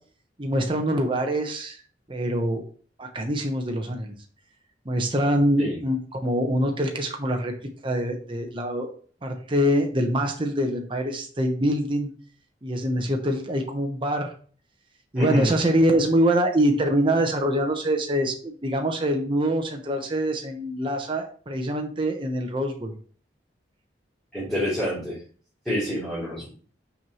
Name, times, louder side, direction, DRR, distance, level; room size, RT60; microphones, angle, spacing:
voice 1, 0.4-1.8 2.1-2.6 3.0-4.1 4.9-7.5 7.8-8.9 9.2-12.1 12.6-14.3 15.1-22.9, equal, 25° right, 2 dB, 0.9 m, -24 dB
voice 2, 15.1-15.5 24.3-25.2 25.6-26.5, equal, 5° left, -11 dB, 2.9 m, -27 dB
5.9 x 5.4 x 3.0 m, 0.42 s
head